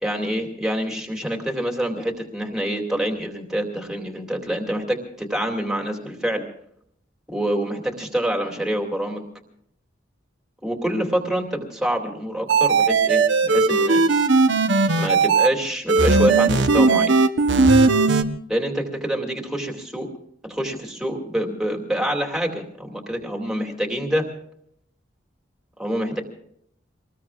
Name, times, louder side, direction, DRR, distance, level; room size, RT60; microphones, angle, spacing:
voice 1, 0.0-6.4 7.3-9.2 10.6-14.0 14.9-17.2 18.5-20.1 20.4-24.3 25.8-26.2, right 1 dB, 5° right, 2 dB, 2.4 m, -26 dB
sound 1, 12.5-15.5 15.9-18.2, right 3 dB, 70° right, 1.0 m, -17 dB
25.5 x 20.5 x 2.4 m, 0.68 s
head